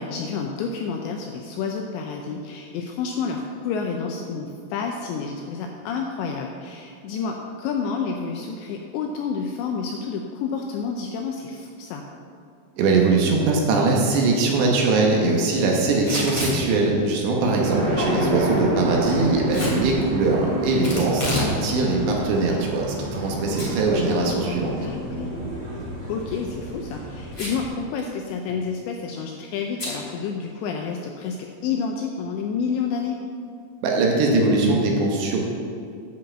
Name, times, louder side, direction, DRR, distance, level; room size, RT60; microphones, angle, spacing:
voice 1, 0.0-12.0 18.0-18.1 24.8-25.4 26.1-33.2, left 5 dB, 85° left, 2 dB, 2.6 m, -29 dB
voice 2, 12.8-24.7 33.8-35.4, right 3 dB, 70° right, -1 dB, 3.1 m, -21 dB
Packing tape duct tape / Tearing, 16.0-16.6 19.5-19.8 20.8-21.5 21.9-22.0 22.7-23.3 23.6-23.7 24.1-24.2 26.1-26.4 27.3-27.7 28.0-28.1 28.3-28.7 29.8-30.0, left 1 dB, 20° left, 2.1 m, -28 dB
sound 1, 17.6-27.7, equal, 55° right, 1.5 m, -29 dB
10.0 x 5.6 x 7.4 m, 2.4 s
omnidirectional pair, 5.7 m